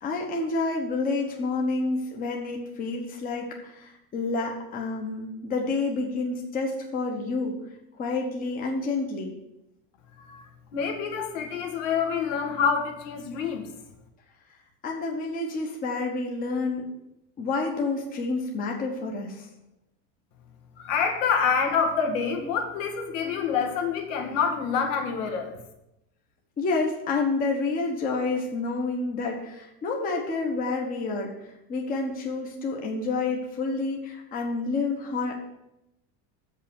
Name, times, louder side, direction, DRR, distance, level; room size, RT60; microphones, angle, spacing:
voice 1, 0.0-7.5 8.0-9.3 14.8-16.8 17.4-19.5 26.6-31.3 31.7-35.3, left 3 dB, 20° left, 1 dB, 1.0 m, -29 dB
voice 2, 10.7-13.7 20.8-25.6, left 6 dB, 70° left, 3 dB, 1.7 m, -27 dB
7.3 x 5.5 x 7.0 m, 0.87 s
cardioid pair, 170°, 39 cm